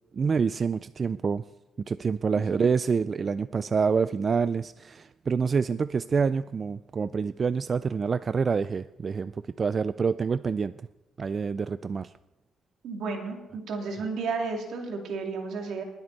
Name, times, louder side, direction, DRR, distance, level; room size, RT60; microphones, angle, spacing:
voice 1, 0.1-1.5 1.9-10.9 11.2-12.1, right 5 dB, 40° right, 14 dB, 0.3 m, -27 dB
voice 2, 2.4-2.7 12.8-15.8, right 4 dB, 75° right, 3 dB, 2.5 m, -33 dB
21.0 x 7.9 x 4.1 m, 1.0 s
cardioid pair, 90°, 0 cm